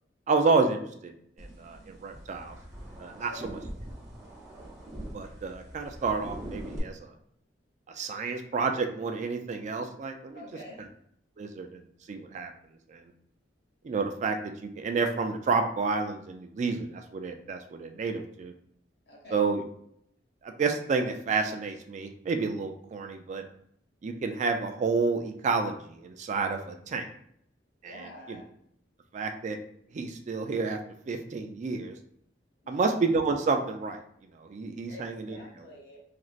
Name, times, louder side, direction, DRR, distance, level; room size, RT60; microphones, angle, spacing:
voice 1, 0.3-1.1 1.4-2.6 3.0-3.6 5.1-7.1 7.9-10.4 11.4-11.8 12.1-12.5 12.9-13.0 13.8-18.5 19.3-19.6 20.4-23.4 24.0-27.1 27.8-28.4 29.1-29.6 29.9-30.8 31.1-31.9 32.7-34.0 34.4-35.4, right 4 dB, 40° right, 6 dB, 0.3 m, -30 dB
sound 1, 1.4-6.8, right 1 dB, 15° right, 0.8 m, -43 dB
voice 2, 3.2-3.5 10.3-10.9 19.1-19.5 27.8-28.5 32.6-32.9 34.9-36.0, left 1 dB, 65° left, -2 dB, 0.8 m, -47 dB
3.1 x 2.5 x 2.4 m, 0.68 s
head